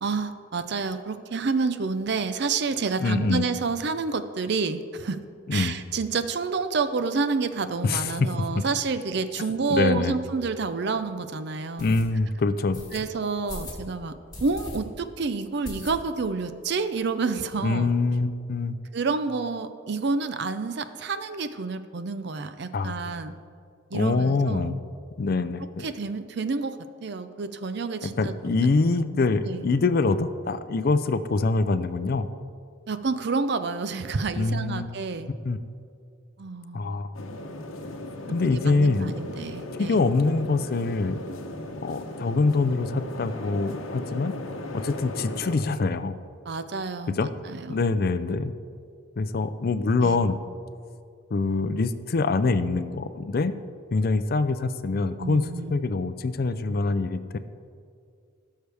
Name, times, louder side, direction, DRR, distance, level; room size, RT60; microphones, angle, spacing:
voice 1, 0.0-5.2 5.5-12.0 12.9-17.9 18.9-23.3 23.9-24.7 25.8-28.7 29.5-29.6 32.9-35.3 36.4-36.9 38.3-40.0 46.5-47.9 50.0-50.2 55.2-55.8, right 4 dB, 55° right, 11 dB, 0.5 m, -29 dB
voice 2, 3.0-3.4 5.5-5.7 7.8-8.6 9.7-10.2 11.8-12.8 17.6-18.7 22.7-23.1 23.9-24.8 25.2-25.9 28.0-32.3 34.4-34.9 35.4-35.6 36.7-37.2 38.3-39.1 39.8-41.2 41.8-44.3 44.7-46.1 47.1-47.3 47.7-48.5 49.2-50.4 51.3-53.5 53.9-57.4, left 3 dB, 50° left, 12 dB, 0.4 m, -24 dB
sound 1, 10.4-10.5 10.9-11.0 11.8-12.0 12.7-13.0 13.5-13.8 14.3-14.8 15.1-15.2 15.6-16.3 16.6-16.7 17.0-17.1 17.3-18.0, left 2 dB, 20° left, 2.0 m, -40 dB
sound 2, 37.1-45.6, left 1 dB, 85° left, 0.9 m, -37 dB
17.0 x 6.6 x 3.4 m, 2.3 s
head